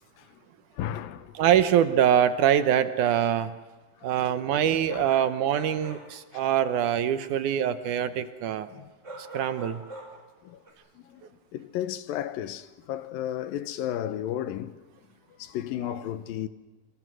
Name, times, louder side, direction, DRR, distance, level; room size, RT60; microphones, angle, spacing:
voice 1, 0.7-1.4 4.0-4.3 4.9-5.1 6.3-6.4 8.7-8.9 10.4-10.6 11.0-14.8 15.4-16.5, left 11 dB, 85° left, 2.7 m, -34 dB
voice 2, 1.4-3.5 4.0-8.7 9.3-9.8, right 9 dB, 70° right, 2.2 m, -24 dB
sound 1, 5.0-6.1 9.0-10.3 10.7-10.8, right 2 dB, 20° right, 5.6 m, -44 dB
27.5 x 26.5 x 6.3 m
omnidirectional pair, 4.0 m